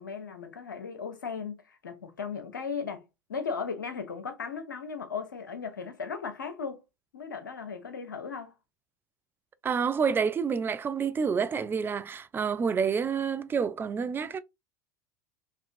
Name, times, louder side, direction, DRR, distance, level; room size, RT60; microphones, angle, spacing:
voice 1, 0.0-3.0 3.3-6.8 7.1-8.5, left 5 dB, 85° left, 0.7 m, -36 dB
voice 2, 9.6-14.4, right 6 dB, 20° right, 0.4 m, -28 dB
3.5 x 2.8 x 2.5 m
hypercardioid pair, 80°, 10 cm